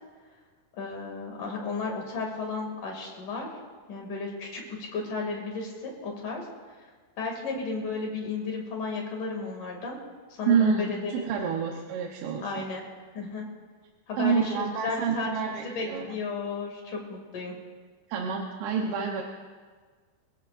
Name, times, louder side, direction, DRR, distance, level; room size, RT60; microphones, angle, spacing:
voice 1, 0.8-3.5 3.9-6.4 7.2-10.0 10.4-11.3 12.4-12.8 13.1-13.5 14.1-15.3 15.6-17.6, left 4 dB, 50° left, 0 dB, 3.8 m, -33 dB
voice 2, 10.5-12.6 14.2-16.2 18.1-19.2, right 6 dB, 80° right, 0 dB, 3.2 m, -28 dB
26.0 x 16.0 x 2.6 m, 1.5 s
omnidirectional pair, 4.9 m